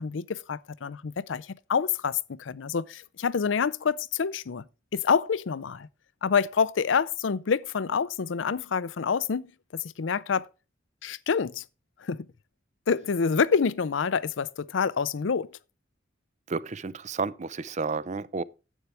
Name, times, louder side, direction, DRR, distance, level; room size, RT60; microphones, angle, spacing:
voice 1, 0.0-4.6 4.9-5.9 6.2-9.5 9.7-10.5 11.0-11.6 12.0-12.3 12.9-15.5, left 6 dB, 80° left, 0.5 m, -27 dB
voice 2, 16.5-18.4, right 4 dB, 40° right, 0.5 m, -31 dB
11.0 x 8.1 x 3.4 m
head